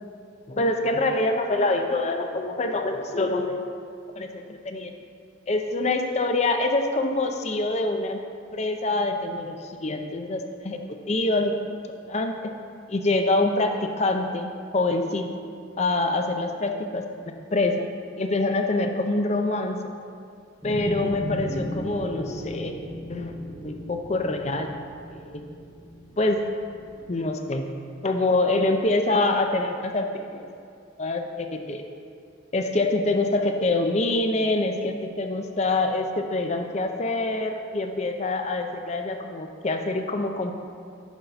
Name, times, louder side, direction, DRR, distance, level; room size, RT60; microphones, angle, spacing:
voice 1, 0.5-3.7 4.2-4.9 5.5-8.2 8.5-10.8 11.1-11.8 12.1-12.5 12.9-15.4 15.8-17.8 18.2-19.8 20.6-22.8 23.1-23.3 23.6-24.7 25.1-25.4 26.2-26.4 27.1-27.7 28.0-30.5 31.0-31.8 32.5-40.5, left 2 dB, 35° left, 5 dB, 0.5 m, -25 dB
sound 1, 20.6-27.2, equal, 5° right, 1.0 m, -36 dB
10.5 x 4.0 x 5.6 m, 2.4 s
head